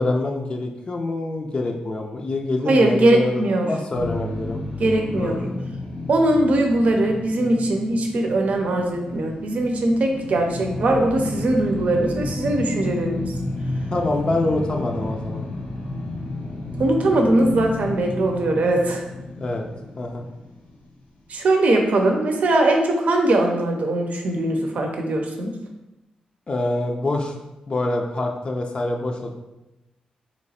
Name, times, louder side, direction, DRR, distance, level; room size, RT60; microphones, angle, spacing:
voice 1, 0.0-4.6 5.1-5.5 13.9-15.5 19.4-19.7 20.0-20.2 26.5-27.4 27.7-29.3, left 2 dB, 40° left, 2 dB, 0.4 m, -25 dB
voice 2, 2.7-3.7 4.8-5.4 6.1-13.3 16.8-19.0 21.3-25.6, right 1 dB, 65° right, 3 dB, 0.6 m, -20 dB
sound 1, 3.9-21.1, left 2 dB, 80° left, 0.8 m, -32 dB
3.2 x 2.9 x 4.2 m, 0.98 s
cardioid pair, 90°, 3 cm